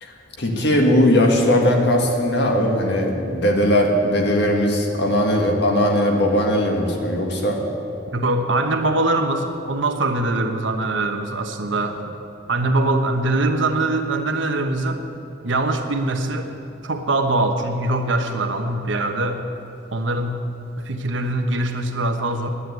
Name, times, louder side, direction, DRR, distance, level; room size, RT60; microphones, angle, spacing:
voice 1, 0.0-7.6, left 1 dB, 65° left, 1 dB, 1.8 m, -19 dB
voice 2, 8.1-12.0 12.5-15.0 15.4-16.5 16.8-19.4 19.9-20.4 20.8-22.5, right 2 dB, 85° right, 5 dB, 1.1 m, -22 dB
9.9 x 9.4 x 9.4 m, 2.9 s
head